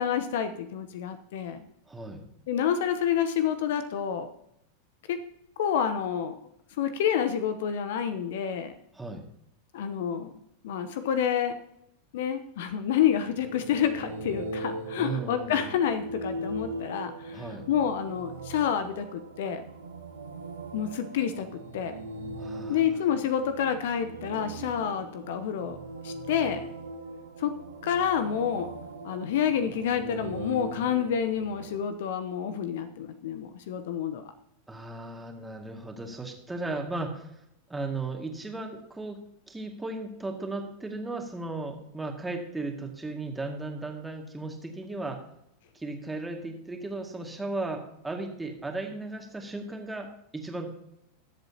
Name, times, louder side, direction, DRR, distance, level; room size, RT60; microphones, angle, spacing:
voice 1, 0.0-1.6 2.5-4.3 5.1-5.2 5.6-6.3 6.8-8.7 9.7-10.3 10.6-11.6 12.1-19.6 20.7-21.9 22.7-25.8 26.0-26.6 27.4-27.6 27.8-28.7 29.0-34.3, left 8 dB, 60° left, 10 dB, 0.9 m, -28 dB
voice 2, 1.9-2.2 8.9-9.2 15.0-15.7 17.3-17.7 22.4-22.8 34.7-37.4 37.7-39.2 39.5-45.2 45.7-50.7, right 2 dB, 10° right, 2 dB, 2.1 m, -36 dB
sound 1, 13.0-31.8, right 2 dB, 80° right, 1.6 m, -40 dB
21.0 x 7.8 x 2.9 m, 0.79 s
figure-of-eight pair, 90°, 0 cm